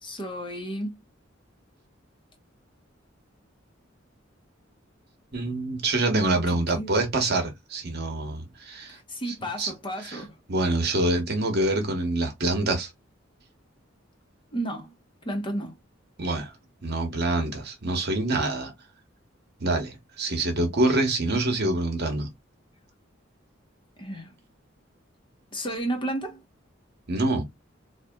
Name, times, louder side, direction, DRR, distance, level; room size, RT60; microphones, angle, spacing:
voice 1, 0.0-0.9 6.5-7.0 8.9-10.4 14.5-14.9 15.2-15.7 24.0-24.3 25.5-26.4, right 1 dB, 25° left, 1.1 m, -32 dB
voice 2, 5.3-9.0 9.3-9.7 10.0-10.2 10.5-12.9 16.2-16.5 16.8-18.7 19.6-22.3 27.1-27.5, right 2 dB, 55° right, 1.1 m, -26 dB
4.0 x 2.5 x 2.3 m
head